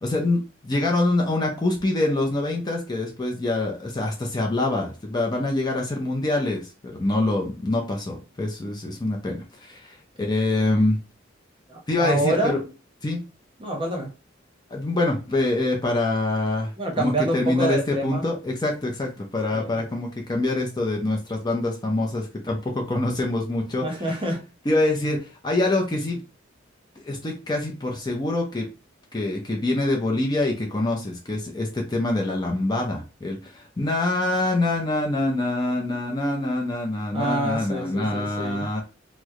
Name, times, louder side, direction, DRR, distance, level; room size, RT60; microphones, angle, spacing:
voice 1, 0.0-11.0 11.9-12.6 13.0-13.2 14.7-16.7 17.0-23.9 24.7-26.2 27.0-28.7 29.1-38.8, left 2 dB, 20° left, 0 dB, 0.5 m, -25 dB
voice 2, 11.7-12.7 13.6-14.1 16.8-18.3 19.5-19.7 23.8-24.4 25.1-25.2 37.1-38.7, right 1 dB, 25° right, 0 dB, 0.8 m, -27 dB
3.1 x 2.1 x 3.6 m, 0.33 s
head